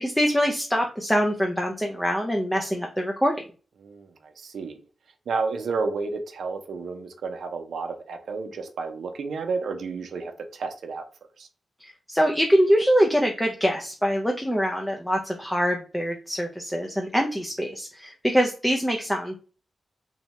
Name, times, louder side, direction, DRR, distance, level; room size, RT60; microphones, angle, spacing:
voice 1, 0.0-3.3 11.8-19.4, equal, 5° left, 1 dB, 0.4 m, -24 dB
voice 2, 3.8-4.8 5.3-11.0 11.4-11.5, right 4 dB, 80° right, 6 dB, 0.5 m, -31 dB
2.7 x 2.1 x 2.9 m, 0.37 s
wide cardioid pair, 100°, 0 cm